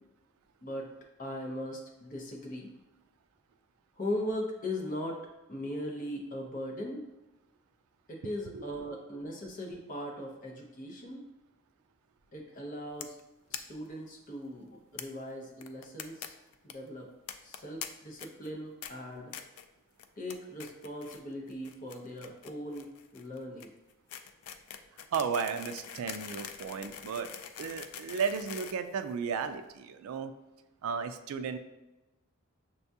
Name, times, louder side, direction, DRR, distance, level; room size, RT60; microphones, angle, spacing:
voice 1, 1.2-2.7 4.0-5.2 5.5-7.0 8.1-11.2 12.3-13.1 13.5-16.3 16.6-17.1 17.4-19.3 20.2-23.7, left 1 dB, 35° left, 0 dB, 0.6 m, -39 dB
sound 1, 13.0-13.2 13.5-13.6 13.9-14.0 14.2-14.3 15.0-15.1 15.6-16.3 16.5-16.7 17.3-17.9 18.2-18.5 18.8-18.9 19.3-19.7 20.0-20.3 20.6-21.2 21.5-29.5, left 9 dB, 85° left, 0.3 m, -43 dB
voice 2, 25.1-27.3 27.6-30.3 30.8-31.6, right 6 dB, 75° right, 8 dB, 0.3 m, -34 dB
6.4 x 2.3 x 2.7 m, 1.0 s
head